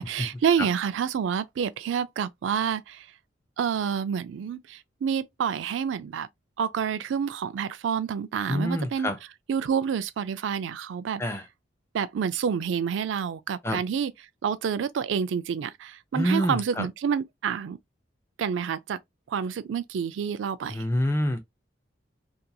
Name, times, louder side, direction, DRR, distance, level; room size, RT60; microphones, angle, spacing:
voice 1, 0.0-3.1 3.6-6.3 6.6-9.1 9.5-11.2 11.9-14.1 14.4-17.8 18.4-19.0 19.3-20.9, right 7 dB, 80° right, 0.3 m, -28 dB
voice 2, 8.5-9.2 11.2-11.4 13.6-13.8 16.1-16.9 20.7-21.4, equal, 15° left, 0.4 m, -26 dB
2.8 x 2.5 x 2.2 m
head